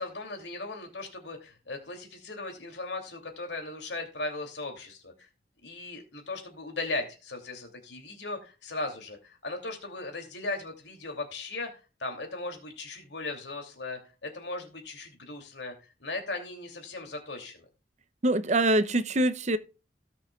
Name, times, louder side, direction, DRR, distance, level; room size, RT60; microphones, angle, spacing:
voice 1, 0.0-5.3 5.6-11.7 12.0-15.7 16.0-17.6, left 2 dB, 85° left, 2.9 m, -37 dB
voice 2, 18.2-19.6, right 1 dB, 40° right, 0.7 m, -24 dB
17.5 x 6.2 x 2.4 m
head